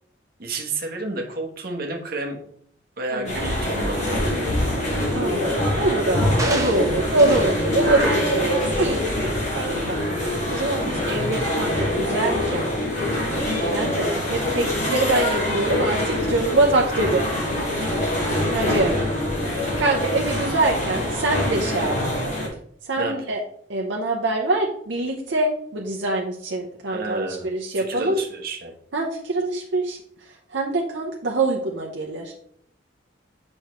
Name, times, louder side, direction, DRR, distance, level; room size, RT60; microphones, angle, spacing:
voice 1, 0.4-2.4 3.0-4.6 10.8-10.9 21.8-21.9 23.0-23.1 26.9-27.5 27.8-28.7, right 2 dB, 50° right, 1 dB, 1.1 m, -31 dB
sound 1, 3.2-22.5, left 1 dB, 40° left, 2.2 m, -24 dB
voice 2, 5.1-9.1 9.5-12.8 13.1-13.3 13.6-17.3 18.5-19.0 19.4-22.0 22.8-23.4 23.7-28.2 28.9-32.3, right 2 dB, 75° right, -1 dB, 0.8 m, -24 dB
sound 2, 6.4-7.6 8.0-8.3 8.8-8.9, right 2 dB, 15° right, 0.8 m, -32 dB
6.5 x 5.4 x 3.1 m, 0.64 s
head